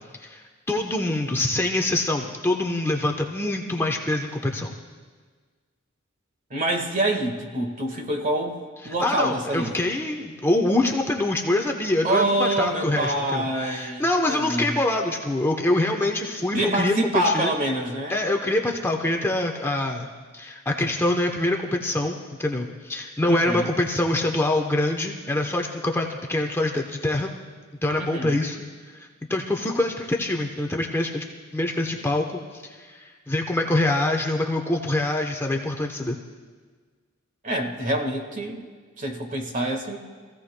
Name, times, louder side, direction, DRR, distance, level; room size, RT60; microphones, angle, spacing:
voice 1, 0.7-4.7 8.8-17.5 18.1-20.1 20.3-27.3 27.8-28.6 28.9-31.2 31.5-36.2, left 1 dB, 10° left, 1 dB, 0.8 m, -25 dB
voice 2, 6.5-8.6 8.8-9.8 12.0-14.0 14.3-14.8 16.5-18.2 23.3-23.7 28.0-28.4 37.4-38.7 39.0-40.0, right 1 dB, 40° right, 4 dB, 1.6 m, -26 dB
25.0 x 15.5 x 2.2 m, 1.5 s
head